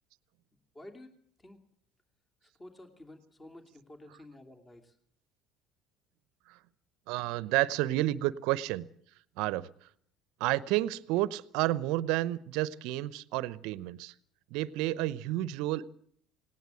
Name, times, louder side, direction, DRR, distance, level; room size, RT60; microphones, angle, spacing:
voice 1, 0.7-1.1 1.4-1.6 2.4-4.9, left 1 dB, 20° left, 5 dB, 2.8 m, -51 dB
voice 2, 7.1-8.9 9.4-9.7 10.4-14.1 14.5-15.9, right 16 dB, 65° right, 19 dB, 0.7 m, -30 dB
18.5 x 18.5 x 7.8 m, 0.64 s
hypercardioid pair, 65°, 0 cm